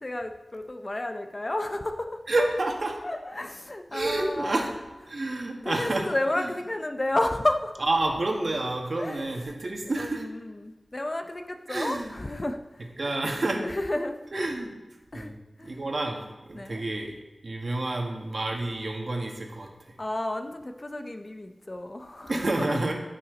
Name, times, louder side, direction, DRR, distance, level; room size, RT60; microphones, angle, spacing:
voice 1, 0.0-2.2 3.0-4.7 5.1-5.2 5.6-7.7 9.0-9.4 10.0-12.9 13.6-14.5 15.1-15.8 16.5-16.8 20.0-22.8, left 1 dB, 35° left, 6 dB, 0.7 m, -32 dB
voice 2, 2.3-3.0 3.9-4.7 5.1-6.1 6.4-6.5 7.9-10.2 11.7-12.1 13.0-13.6 14.3-14.8 15.1-15.4 15.6-16.2 16.5-17.1 17.4-20.0 22.3-22.9, right 2 dB, 55° right, 1 dB, 1.8 m, -29 dB
15.0 x 5.9 x 4.0 m, 1.2 s
wide cardioid pair, 90°, 0 cm